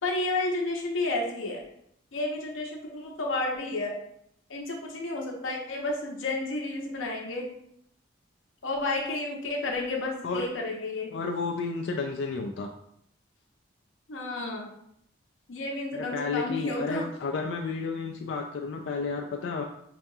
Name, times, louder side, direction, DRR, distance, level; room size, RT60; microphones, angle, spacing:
voice 1, 0.0-1.6 2.1-4.0 4.5-7.5 8.6-11.1 14.1-14.7 15.5-17.1, left 2 dB, 85° left, 1 dB, 0.8 m, -31 dB
voice 2, 11.1-12.7 15.9-19.6, left 4 dB, 70° left, 1 dB, 0.3 m, -32 dB
5.6 x 2.3 x 2.7 m, 0.71 s
head